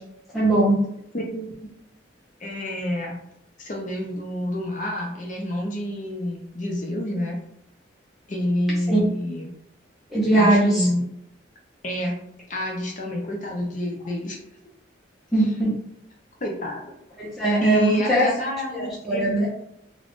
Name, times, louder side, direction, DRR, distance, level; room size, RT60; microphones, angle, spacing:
voice 1, 0.3-0.8 8.9-9.0 10.1-10.9 15.3-15.8 17.2-18.3 18.7-19.5, right 1 dB, ahead, -8 dB, 0.6 m, -20 dB
voice 2, 1.1-1.7 2.4-3.2 3.6-7.4 8.3-9.5 10.3-11.0 11.8-12.2 12.5-14.4 16.4-16.9 17.6-19.5, left 1 dB, 40° left, 0 dB, 0.5 m, -28 dB
2.5 x 2.3 x 3.5 m, 0.75 s
head